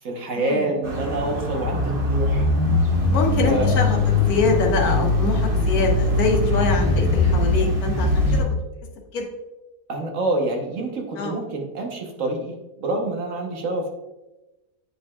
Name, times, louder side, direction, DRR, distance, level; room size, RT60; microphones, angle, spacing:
voice 1, 0.0-2.4 3.4-3.7 9.9-13.9, right 2 dB, 50° right, 2 dB, 1.3 m, -27 dB
sound 1, 0.8-8.4, left 2 dB, 35° right, 1.2 m, -21 dB
voice 2, 3.1-4.0 4.3-8.4 9.1-9.2 11.2-11.3, left 4 dB, 65° left, 0 dB, 1.5 m, -24 dB
9.5 x 5.0 x 2.3 m, 1.0 s
omnidirectional pair, 1.8 m